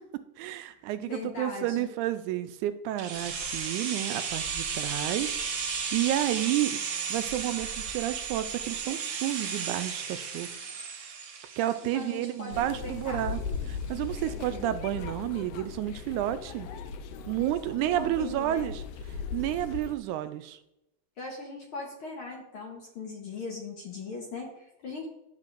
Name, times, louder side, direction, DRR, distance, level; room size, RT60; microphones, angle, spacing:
voice 1, 0.4-6.8 7.1-10.5 11.6-13.4 13.7-16.7 17.3-18.8 19.3-20.6, right 13 dB, 85° right, 11 dB, 2.0 m, -31 dB
voice 2, 1.0-1.9 11.8-13.3 17.4-18.7 21.2-25.1, left 3 dB, 60° left, 0 dB, 1.5 m, -40 dB
sound 1, 3.0-12.8 13.1-13.2, right 6 dB, 60° right, 1.5 m, -34 dB
sound 2, 12.5-20.0, left 5 dB, 80° left, 1.4 m, -38 dB
10.5 x 7.4 x 2.5 m, 0.87 s
omnidirectional pair, 3.4 m